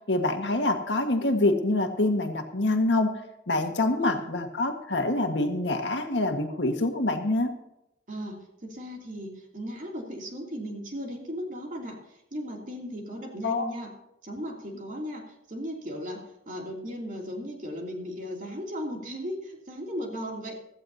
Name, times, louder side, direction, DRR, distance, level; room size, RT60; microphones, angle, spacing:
voice 1, 0.1-3.2 3.5-7.5 13.4-13.7, left 2 dB, 80° left, 5 dB, 1.6 m, -26 dB
voice 2, 8.1-13.9 14.2-20.6, equal, 45° right, 0 dB, 2.9 m, -36 dB
16.0 x 14.0 x 2.8 m, 0.84 s
head